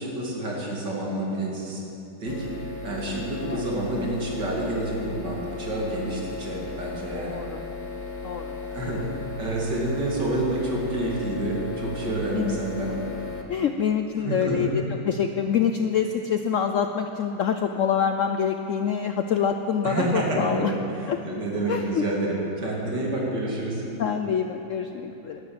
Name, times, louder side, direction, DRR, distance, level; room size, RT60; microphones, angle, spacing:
voice 1, 0.0-1.8 2.2-2.5 2.8-7.4 8.7-9.0 9.4-12.9 14.2-14.7 19.8-23.8, right 2 dB, 70° right, -3 dB, 3.2 m, -28 dB
sound 1, 2.3-13.4, left 4 dB, 30° left, 1.3 m, -36 dB
voice 2, 7.3-7.6 8.2-8.6 12.3-12.6 13.5-20.7 21.1-21.2 21.7-22.1 24.0-25.4, left 7 dB, 70° left, 7 dB, 0.7 m, -26 dB
12.0 x 11.5 x 8.7 m, 2.9 s
omnidirectional pair, 1.9 m